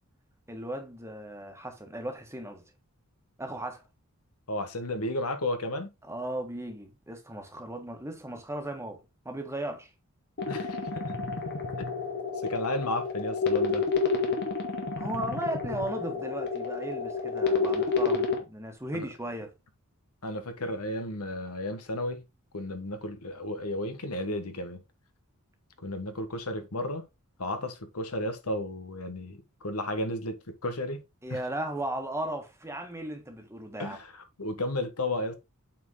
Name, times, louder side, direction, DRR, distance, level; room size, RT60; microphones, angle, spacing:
voice 1, 0.5-2.6 3.4-3.8 6.1-9.9 15.0-19.5 31.2-34.0, right 1 dB, 10° right, 1.5 m, -36 dB
voice 2, 4.5-5.9 10.5-11.1 12.4-13.8 18.9-19.1 20.2-22.2 22.5-24.8 25.8-27.0 27.4-31.0 31.3-31.4 33.8-35.3, left 1 dB, 80° left, 1.4 m, -33 dB
sound 1, 10.4-18.4, left 4 dB, 50° left, 1.8 m, -29 dB
8.2 x 4.5 x 3.8 m
head